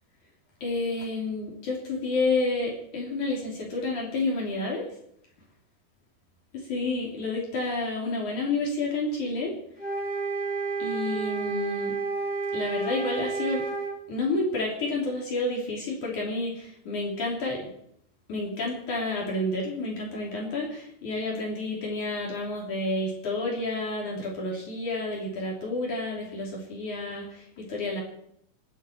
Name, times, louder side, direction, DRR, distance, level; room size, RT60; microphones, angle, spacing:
voice 1, 0.6-4.9 6.7-9.5 10.8-11.9 12.5-13.6 14.1-17.7 18.3-28.0, left 2 dB, 60° left, -2 dB, 4.6 m, -30 dB
sound 1, 9.8-14.0, right 4 dB, ahead, 5.3 m, -30 dB
28.5 x 10.0 x 4.6 m, 0.72 s
omnidirectional pair, 4.0 m